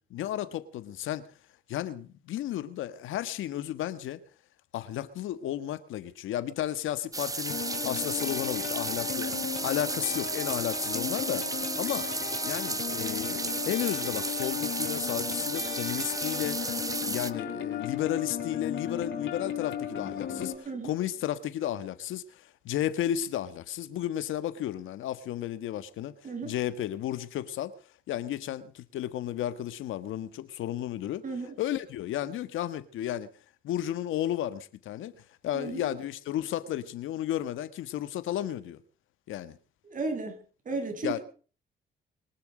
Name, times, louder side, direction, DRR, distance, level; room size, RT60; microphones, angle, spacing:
voice 1, 0.1-1.3 1.7-4.2 4.7-12.1 12.4-26.2 26.4-27.7 28.1-31.2 31.6-33.3 33.6-38.8 39.3-39.6 41.0-41.2, left 12 dB, 85° left, 1.6 m, -33 dB
sound 1, 7.1-17.3, right 3 dB, 15° right, 1.2 m, -33 dB
Robot Heart, 7.5-20.5, left 8 dB, 65° left, 5.1 m, -36 dB
voice 2, 26.2-26.5 31.2-31.6 35.5-35.9 39.8-40.4 40.7-41.2, right 3 dB, 40° right, 7.0 m, -34 dB
23.0 x 12.0 x 5.1 m
cardioid pair, 90°, 20 cm